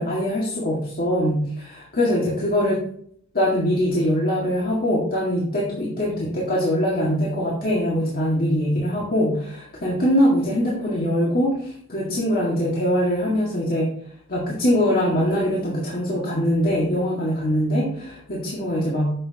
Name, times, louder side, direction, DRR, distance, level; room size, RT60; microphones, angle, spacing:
voice 1, 0.0-2.8 3.3-13.9 14.3-19.1, equal, 45° left, -5 dB, 2.0 m, -22 dB
10.0 x 7.4 x 2.9 m, 0.64 s
head